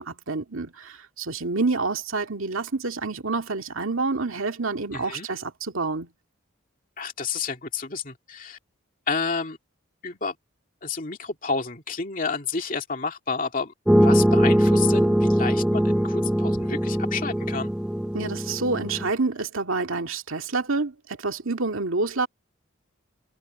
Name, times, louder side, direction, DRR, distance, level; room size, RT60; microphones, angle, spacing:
voice 1, 0.0-6.1 18.1-22.3, right 3 dB, 80° right, 2.1 m, -28 dB
voice 2, 4.9-5.3 7.0-8.6 9.1-9.6 10.0-10.4 10.8-13.7 14.0-17.7, left 5 dB, 40° left, 2.5 m, -30 dB
sound 1, 13.9-19.1, equal, 5° right, 0.5 m, -21 dB
head